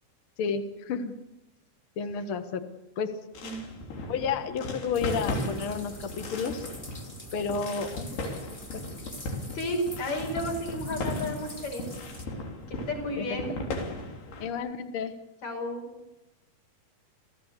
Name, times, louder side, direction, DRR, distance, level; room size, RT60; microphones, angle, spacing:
voice 1, 0.4-1.1 2.0-2.7 3.0-3.1 4.1-6.7 7.3-8.2 8.7-9.0 13.2-13.3 14.4-15.1, left 5 dB, 60° left, 8 dB, 1.4 m, -31 dB
sound 1, 3.3-14.5, left 1 dB, 85° left, 5.3 m, -37 dB
sound 2, 4.9-12.3, left 1 dB, 25° left, 1.0 m, -46 dB
voice 2, 9.5-11.9 12.7-13.6 15.4-15.9, left 1 dB, 45° left, 3 dB, 6.6 m, -32 dB
28.0 x 16.0 x 8.3 m, 0.97 s
omnidirectional pair, 4.4 m